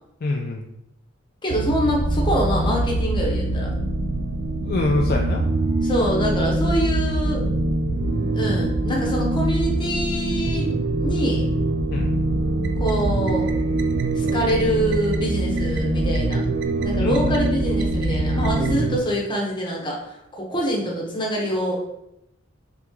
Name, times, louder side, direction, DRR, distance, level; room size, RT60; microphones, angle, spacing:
voice 1, 0.2-0.6 4.6-5.4 11.9-12.2 17.0-17.4, left 2 dB, 50° left, 1 dB, 0.3 m, -25 dB
voice 2, 1.4-3.7 5.8-7.4 8.3-11.5 12.8-13.5 14.1-16.4 16.8-21.8, equal, 25° left, -2 dB, 0.9 m, -25 dB
sound 1, 1.5-19.0, right 1 dB, 60° right, 0.4 m, -23 dB
3.4 x 3.1 x 3.6 m, 0.85 s
head